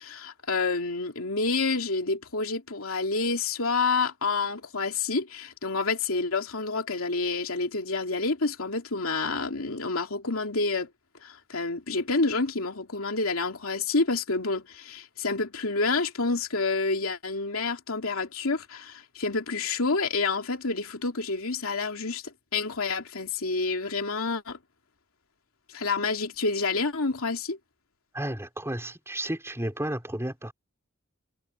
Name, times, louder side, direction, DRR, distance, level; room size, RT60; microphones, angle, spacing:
voice 1, 0.0-10.9 11.2-24.6 25.7-27.6, left 3 dB, 80° left, 2.8 m, -28 dB
voice 2, 28.1-30.5, right 1 dB, 15° right, 5.2 m, -32 dB
head